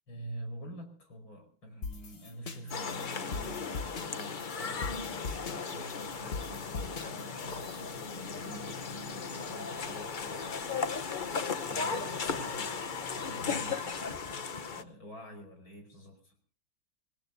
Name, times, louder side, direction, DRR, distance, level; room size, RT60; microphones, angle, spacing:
voice 1, 0.1-10.4 11.7-14.4 14.8-16.3, right 1 dB, 85° left, 5 dB, 5.7 m, -47 dB
sound 1, 1.8-8.2, left 4 dB, 35° left, 1.3 m, -41 dB
sound 2, 2.7-14.8, left 5 dB, 60° left, 0.5 m, -36 dB
26.5 x 18.0 x 2.6 m, 0.38 s
omnidirectional pair, 2.1 m